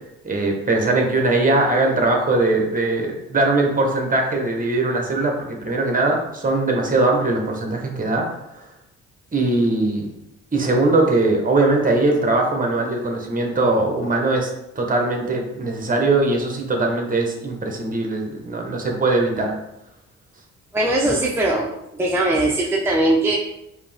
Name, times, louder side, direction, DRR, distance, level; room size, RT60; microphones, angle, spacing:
voice 1, 0.2-8.3 8.6-8.7 9.3-10.1 10.5-14.5 14.7-19.5, right 2 dB, 25° right, 2 dB, 1.0 m, -20 dB
voice 2, 20.7-21.7 22.0-23.4, right 1 dB, 10° right, -3 dB, 0.6 m, -20 dB
5.1 x 2.8 x 3.4 m, 0.85 s
cardioid pair, 90°, 30 cm